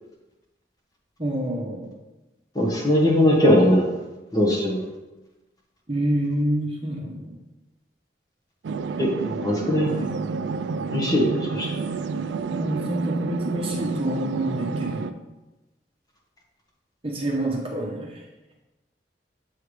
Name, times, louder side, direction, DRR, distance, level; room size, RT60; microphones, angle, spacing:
voice 1, 1.2-1.9 5.9-7.4 12.5-15.1 17.0-18.2, right 1 dB, 30° right, -1 dB, 0.9 m, -27 dB
voice 2, 2.5-3.9 4.3-4.8 9.0-9.9 10.9-11.8, left 1 dB, 20° left, -3 dB, 1.3 m, -20 dB
sound 1, 8.6-15.1, right 4 dB, 80° right, 0.3 m, -30 dB
7.8 x 3.5 x 4.8 m, 1.1 s
head